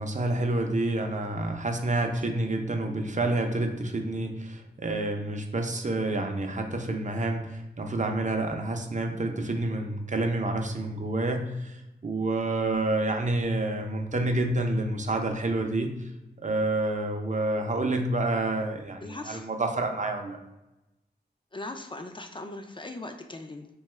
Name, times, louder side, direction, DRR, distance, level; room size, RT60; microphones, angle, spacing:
voice 1, 0.0-15.9 16.4-20.4, right 2 dB, 45° right, 3 dB, 0.5 m, -28 dB
voice 2, 19.0-19.5 21.5-23.7, left 2 dB, 25° left, 5 dB, 0.4 m, -39 dB
3.6 x 2.3 x 3.1 m, 0.97 s
cardioid pair, 45°, 18 cm